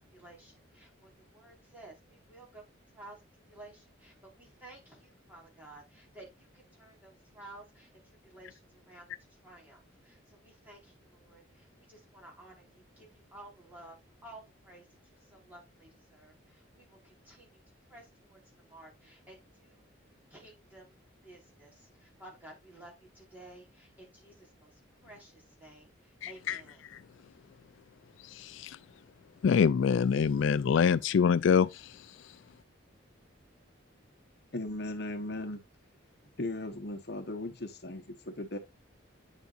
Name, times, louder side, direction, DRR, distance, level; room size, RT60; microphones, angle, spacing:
voice 1, 0.1-2.7 2.9-3.2 3.5-7.9 8.2-9.0 9.4-13.9 14.2-14.8 15.3-17.6 17.9-19.9 20.3-24.7 25.0-25.9 26.3-26.8, right 2 dB, 10° right, 4.5 m, -54 dB
voice 2, 26.2-26.6 28.4-28.8 29.4-31.8, left 6 dB, 70° left, 0.3 m, -25 dB
voice 3, 34.5-35.6 36.4-38.6, left 1 dB, 50° left, 1.1 m, -37 dB
9.2 x 7.0 x 2.5 m
head